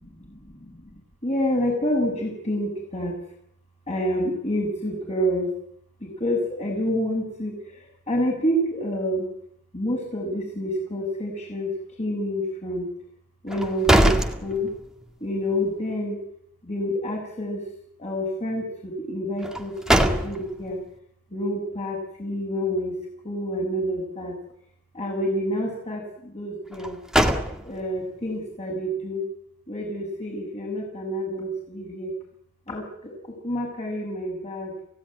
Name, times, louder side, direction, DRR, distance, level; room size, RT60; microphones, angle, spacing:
voice 1, 0.0-3.2 3.9-5.5 6.0-9.3 9.7-12.9 13.4-14.1 14.4-14.7 15.2-16.2 16.6-17.7 18.0-20.8 21.3-23.0 23.2-24.4 24.9-27.0 27.6-29.3 29.7-32.1 32.7-34.7, equal, 30° left, -1 dB, 6.6 m, -28 dB
sound 1, 13.5-15.1 15.5-15.6 19.4-20.7 26.7-28.0, right 1 dB, 5° right, 2.1 m, -23 dB
28.5 x 16.5 x 9.8 m, 0.74 s
head